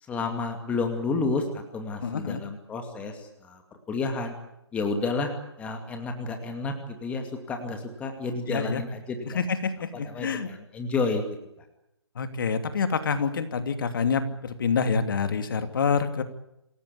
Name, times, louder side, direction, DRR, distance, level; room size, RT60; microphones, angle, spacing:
voice 1, 0.0-3.6 3.9-4.3 4.7-5.3 5.6-9.5 9.9-11.3 11.6-11.7, left 3 dB, 10° left, 5 dB, 2.4 m, -31 dB
voice 2, 2.0-2.4 8.5-8.8 9.3-10.5 12.2-16.2, left 5 dB, 50° left, 9 dB, 2.6 m, -27 dB
27.5 x 17.0 x 8.5 m, 0.84 s
figure-of-eight pair, 155°, 15 cm